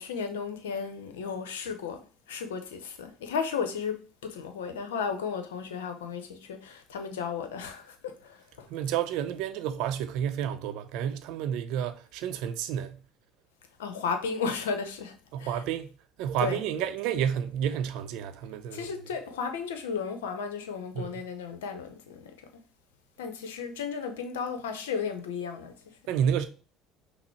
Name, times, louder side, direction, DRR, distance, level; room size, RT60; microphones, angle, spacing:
voice 1, 0.0-8.7 13.8-15.6 16.4-16.6 18.7-22.3 23.2-25.8, left 6 dB, 80° left, 0.7 m, -34 dB
voice 2, 8.7-13.0 15.3-15.9 16.2-18.9 20.9-21.1 26.1-26.5, right 9 dB, 65° right, 0.5 m, -30 dB
5.9 x 2.0 x 4.4 m
hypercardioid pair, 65°, 0 cm